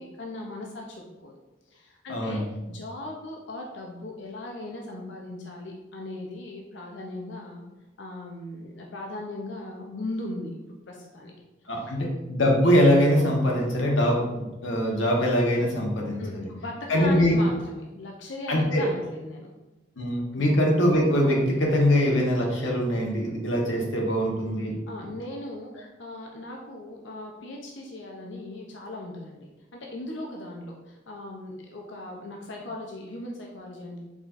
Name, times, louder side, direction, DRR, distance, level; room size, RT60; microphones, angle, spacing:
voice 1, 0.0-1.3 1.7-7.6 8.0-10.6 10.9-11.4 11.7-12.0 16.2-19.5 20.3-20.5 24.9-34.0, left 1 dB, 70° left, 0 dB, 0.6 m, -38 dB
voice 2, 2.1-2.4 11.7-16.4 16.9-17.4 18.5-18.8 20.0-24.7, equal, 85° left, -1 dB, 1.1 m, -23 dB
4.8 x 4.1 x 2.5 m, 1.1 s
head